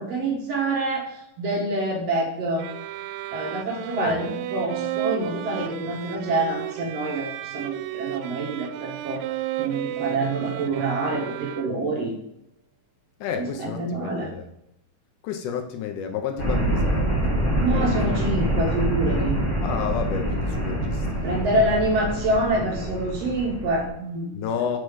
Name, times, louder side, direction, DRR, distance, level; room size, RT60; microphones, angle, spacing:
voice 1, 0.0-2.7 3.3-12.1 13.4-14.3 17.6-19.4 21.2-24.3, right 2 dB, 60° right, -1 dB, 1.9 m, -26 dB
sound 1, 2.6-12.0, right 14 dB, 85° right, 2.2 m, -33 dB
voice 2, 13.2-14.5 15.2-18.1 19.6-21.6 24.3-24.8, left 7 dB, 75° left, 5 dB, 2.1 m, -31 dB
sound 2, 16.4-23.9, right 1 dB, 45° left, 0.9 m, -25 dB
6.2 x 5.3 x 4.9 m, 0.78 s
omnidirectional pair, 3.9 m